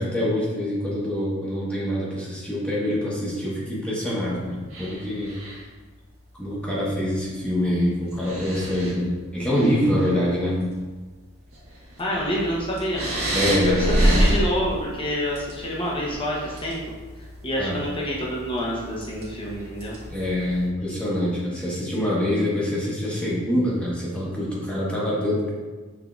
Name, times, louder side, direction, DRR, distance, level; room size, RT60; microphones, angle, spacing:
voice 1, 0.0-5.3 6.3-10.6 13.3-14.0 17.6-17.8 20.1-25.5, left 1 dB, 5° left, -6 dB, 1.1 m, -25 dB
sound 1, 4.7-5.8 7.3-7.4 8.0-9.0 9.4-10.2 10.8-10.9 11.5-20.7, right 1 dB, 75° right, 1.3 m, -29 dB
voice 2, 12.0-13.1 13.8-16.8 17.4-20.0, equal, 25° left, -4 dB, 0.9 m, -27 dB
5.7 x 3.6 x 2.4 m, 1.4 s
head